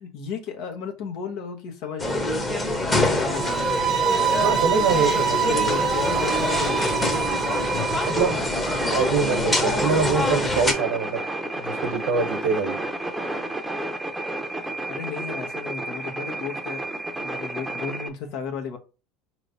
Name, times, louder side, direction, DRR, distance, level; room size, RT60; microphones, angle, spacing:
voice 1, 0.0-2.4 2.8-3.9 4.6-6.9 14.9-16.8 17.1-18.8, left 6 dB, 65° left, 0.9 m, -34 dB
sound 1, 2.0-10.7, left 1 dB, 15° left, 1.0 m, -25 dB
sound 2, 3.3-8.3, right 8 dB, 50° right, 0.5 m, -26 dB
voice 2, 4.4-5.7 8.0-8.4 8.9-11.2 11.6-12.8, right 5 dB, 75° right, 0.9 m, -24 dB
sound 3, 6.0-18.1, right 2 dB, 5° right, 0.7 m, -31 dB
4.3 x 3.1 x 2.6 m
supercardioid pair, 100°, 0 cm